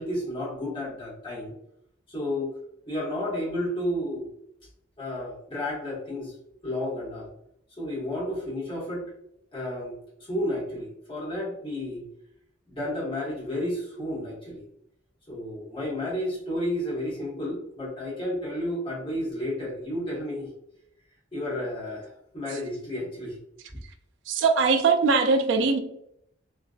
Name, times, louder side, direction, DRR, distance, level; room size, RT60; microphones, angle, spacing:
voice 1, 0.0-1.5 2.1-2.5 2.9-4.3 5.0-6.3 6.6-7.3 7.8-9.0 9.5-12.0 12.7-14.6 15.3-20.5 21.3-23.4, left 1 dB, 25° left, -5 dB, 1.0 m, -32 dB
voice 2, 24.3-25.8, right 4 dB, 70° right, 6 dB, 0.3 m, -21 dB
2.3 x 2.2 x 2.4 m, 0.76 s
head